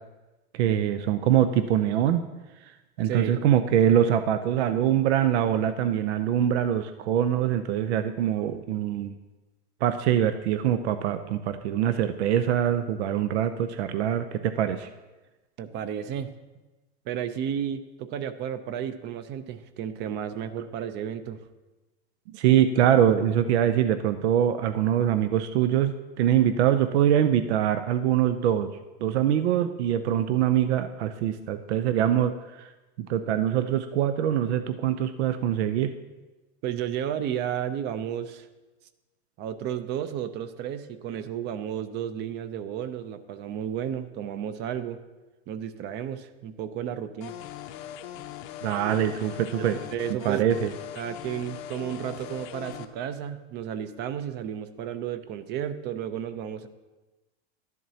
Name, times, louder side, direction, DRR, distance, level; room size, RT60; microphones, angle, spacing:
voice 1, 0.5-2.2 3.0-9.1 9.8-14.9 22.3-28.7 29.0-32.3 32.6-32.7 33.0-35.9 48.6-49.8 50.2-50.7, right 10 dB, 85° right, 10 dB, 0.6 m, -23 dB
voice 2, 15.6-16.3 17.1-21.4 36.6-38.5 39.4-45.0 45.5-47.4 48.8-49.1 49.6-50.4 51.0-56.7, right 9 dB, 35° right, 12 dB, 0.5 m, -33 dB
sound 1, 47.2-52.9, left 11 dB, 55° left, 0.7 m, -40 dB
12.0 x 11.0 x 2.8 m, 1.1 s
supercardioid pair, 150°, 32 cm